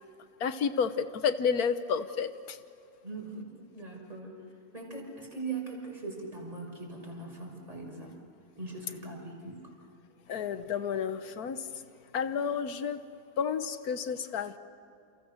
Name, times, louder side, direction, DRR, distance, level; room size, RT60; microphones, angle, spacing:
voice 1, 0.4-2.6 10.3-11.6 12.1-13.0 13.4-14.6, left 6 dB, 90° left, 11 dB, 1.6 m, -30 dB
voice 2, 3.0-4.3 4.7-8.1 8.6-9.6, right 3 dB, 25° right, -1 dB, 6.3 m, -40 dB
30.0 x 28.5 x 6.8 m, 2.6 s
omnidirectional pair, 1.5 m